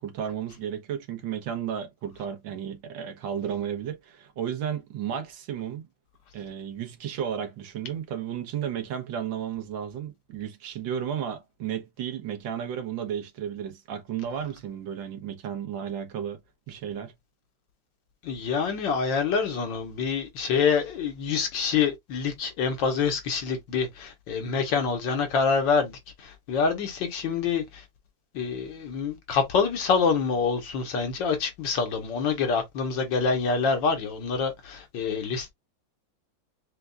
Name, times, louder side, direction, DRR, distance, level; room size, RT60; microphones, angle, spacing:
voice 1, 0.0-5.9 6.3-16.4 16.7-17.1, right 9 dB, 75° right, 1.7 m, -33 dB
voice 2, 18.2-27.8 28.3-35.5, left 5 dB, 75° left, 1.6 m, -26 dB
6.6 x 2.3 x 2.3 m
omnidirectional pair, 2.1 m